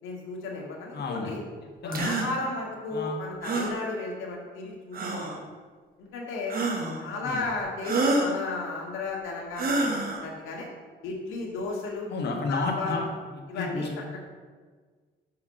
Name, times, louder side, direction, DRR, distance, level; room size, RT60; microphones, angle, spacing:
voice 1, 0.0-1.4 1.8-5.4 6.0-6.6 7.0-10.7 11.0-12.1 12.5-13.1 13.5-13.9, left 3 dB, 85° left, -1 dB, 1.6 m, -34 dB
voice 2, 0.9-1.4 1.8-2.1 2.9-3.2 7.2-7.4 12.1-13.0 13.5-14.0, left 3 dB, 55° left, 0 dB, 1.6 m, -31 dB
sound 1, 1.9-2.3 3.4-3.8 4.9-5.4 6.5-7.0 7.8-8.4 9.5-10.2, right 2 dB, 45° right, 1.3 m, -27 dB
5.7 x 4.7 x 6.3 m, 1.5 s
cardioid pair, 90°, 20 cm